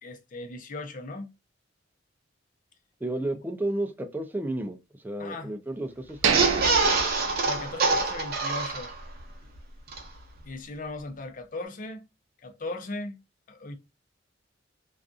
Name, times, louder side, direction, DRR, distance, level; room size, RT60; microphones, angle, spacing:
voice 1, 0.0-1.3 5.2-5.5 7.4-8.9 10.4-12.1 12.4-13.2 13.5-13.8, left 2 dB, 45° left, 0.6 m, -37 dB
voice 2, 3.0-4.8 5.0-6.4, right 1 dB, 10° right, 0.4 m, -32 dB
sound 1, 6.2-9.2 9.6-9.7 9.9-10.0, right 3 dB, 55° right, 0.7 m, -25 dB
sound 2, 6.2-8.2 8.5-8.6 9.1-9.3, right 6 dB, 85° right, 0.4 m, -29 dB
2.5 x 2.4 x 2.3 m
head